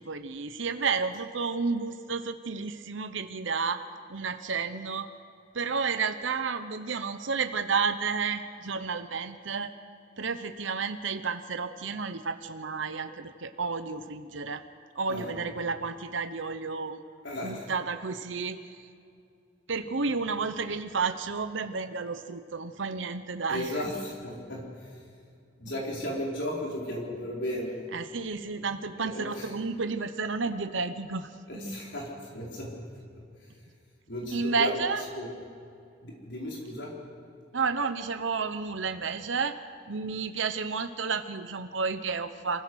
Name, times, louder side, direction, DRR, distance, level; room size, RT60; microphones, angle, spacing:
voice 1, 0.0-3.8 4.1-5.1 5.5-9.7 10.2-14.6 14.9-17.0 17.4-18.9 19.7-23.7 27.9-31.3 34.3-35.0 37.5-39.6 39.9-42.6, right 4 dB, 80° right, 9 dB, 0.9 m, -31 dB
voice 2, 15.1-15.4 17.2-17.7 23.5-25.0 25.6-27.7 29.0-29.5 31.5-32.7 34.1-34.8 35.1-35.3 36.0-36.9, equal, 65° left, -3 dB, 4.4 m, -35 dB
27.5 x 16.0 x 6.4 m, 2.5 s
head